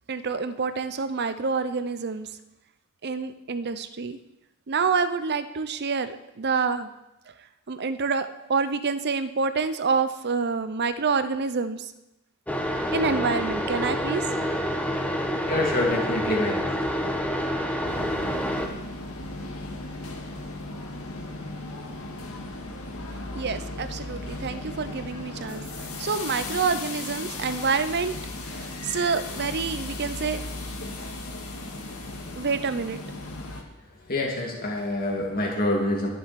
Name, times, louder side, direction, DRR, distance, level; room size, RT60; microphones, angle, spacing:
voice 1, 0.1-2.3 3.0-4.2 4.7-6.9 7.7-11.9 12.9-14.2 23.3-28.1 28.4-30.4 32.4-33.0, right 5 dB, 50° right, 12 dB, 0.7 m, -27 dB
sound 1, 12.5-18.7, equal, 5° left, 1.1 m, -28 dB
voice 2, 15.5-17.1 34.1-36.1, left 1 dB, 40° left, -2 dB, 2.4 m, -27 dB
sound 2, 17.8-33.6, left 2 dB, 80° left, 1.9 m, -36 dB
21.5 x 7.7 x 4.2 m, 0.93 s
head